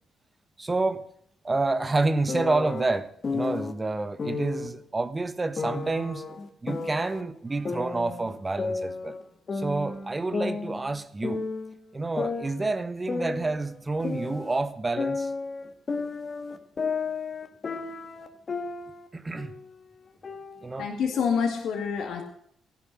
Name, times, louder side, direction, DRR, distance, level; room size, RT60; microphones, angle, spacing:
voice 1, 0.6-1.0 1.4-6.2 6.6-9.2 9.5-11.5 11.9-15.3 19.1-19.5 20.6-20.9, right 3 dB, 25° right, 1.5 m, -29 dB
sound 1, 2.3-3.7 4.2-4.7 5.6-7.2 7.7-9.2 9.5-11.7 12.2-14.6 15.0-19.1 19.4-19.7 20.2-21.2, left 4 dB, 45° left, 2.0 m, -33 dB
voice 2, 20.8-22.2, left 6 dB, 70° left, 2.4 m, -27 dB
15.0 x 11.5 x 6.3 m
supercardioid pair, 55°, 0 cm